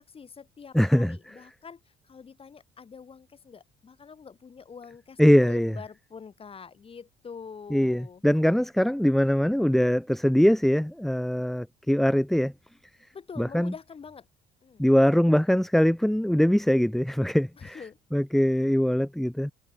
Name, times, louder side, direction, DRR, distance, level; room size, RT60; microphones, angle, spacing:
voice 1, 0.0-8.2 13.1-14.3 14.6-14.9 17.6-18.0, left 6 dB, 35° left, 6.8 m, -45 dB
voice 2, 0.7-1.2 5.2-5.7 7.7-12.5 13.4-13.7 14.8-17.8 18.1-19.5, equal, ahead, 0.6 m, -22 dB
cardioid pair, 110°, 17 cm